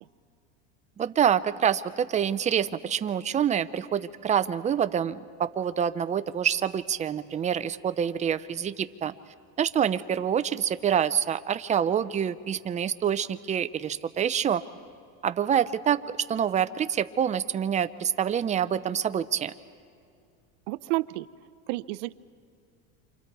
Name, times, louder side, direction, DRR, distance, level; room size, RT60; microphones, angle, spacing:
voice 1, 1.0-9.1 9.6-14.6 15.2-16.0 16.3-19.5, right 8 dB, 20° right, 13 dB, 0.5 m, -26 dB
voice 2, 20.7-21.3 21.7-22.1, right 21 dB, 65° right, 17 dB, 0.7 m, -30 dB
28.5 x 25.0 x 4.6 m, 2.4 s
supercardioid pair, 135°, 39 cm